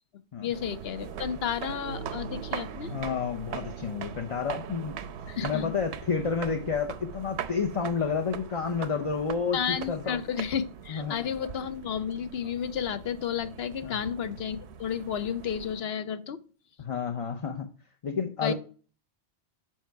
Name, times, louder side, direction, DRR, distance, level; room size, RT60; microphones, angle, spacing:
voice 1, 0.4-2.9 5.3-5.7 9.5-16.4 18.4-18.5, left 8 dB, 65° left, 12 dB, 0.9 m, -32 dB
sound 1, 0.5-15.8, right 7 dB, 80° right, 0.9 m, -41 dB
voice 2, 2.9-5.0 5.4-10.2 10.9-11.3 13.8-14.0 16.8-17.7 18.0-18.5, left 5 dB, 40° left, 4 dB, 0.6 m, -30 dB
7.5 x 5.8 x 4.5 m, 0.38 s
omnidirectional pair, 1.1 m